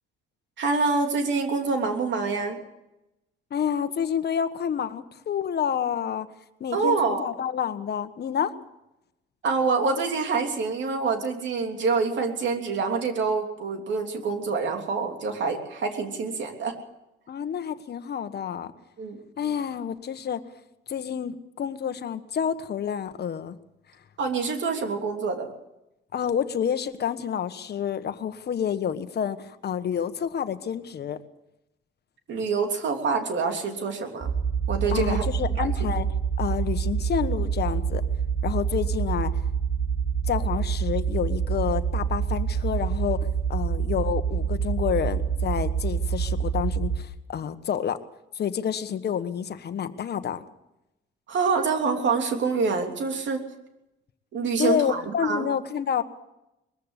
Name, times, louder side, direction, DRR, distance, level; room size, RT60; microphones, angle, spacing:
voice 1, 0.6-2.6 6.7-7.3 9.4-16.8 19.0-19.2 24.2-25.5 32.3-34.3 34.7-35.2 35.6-35.9 51.3-53.4 54.3-55.5, right 4 dB, 70° right, 4 dB, 3.2 m, -26 dB
voice 2, 3.5-6.3 6.6-8.5 17.3-18.7 19.4-20.4 20.9-23.6 26.1-31.2 34.9-36.1 36.4-38.0 38.4-39.4 40.3-48.0 48.3-50.4 54.6-56.0, left 8 dB, 55° left, 10 dB, 1.3 m, -29 dB
sound 1, 34.2-47.0, right 7 dB, 20° right, 2.3 m, -27 dB
22.0 x 14.5 x 8.3 m, 0.92 s
cardioid pair, 90°, 20 cm